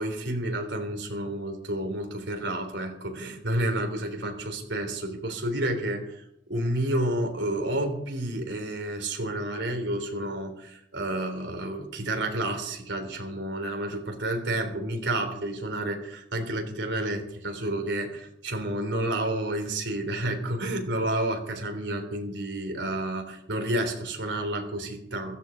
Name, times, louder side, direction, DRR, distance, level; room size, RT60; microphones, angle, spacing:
voice 1, 0.0-25.4, right 1 dB, 75° right, 4 dB, 3.5 m, -30 dB
15.5 x 15.0 x 5.1 m, 0.77 s
head